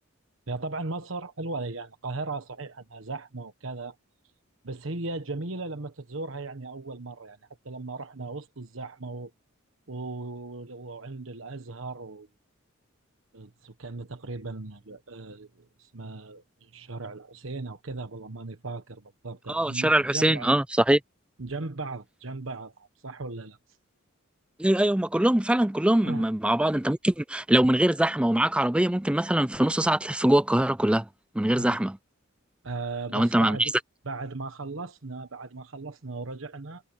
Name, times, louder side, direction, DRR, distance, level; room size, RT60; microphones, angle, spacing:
voice 1, 0.5-3.9 4.6-7.4 7.6-9.3 9.9-12.3 13.3-20.5 21.4-23.6 26.0-26.3 31.6-31.8 32.6-33.7 34.0-36.8, right 3 dB, 70° right, 1.3 m, -37 dB
voice 2, 19.5-21.0 24.6-31.1 31.4-32.0 33.1-33.7, right 1 dB, 5° right, 0.3 m, -23 dB
head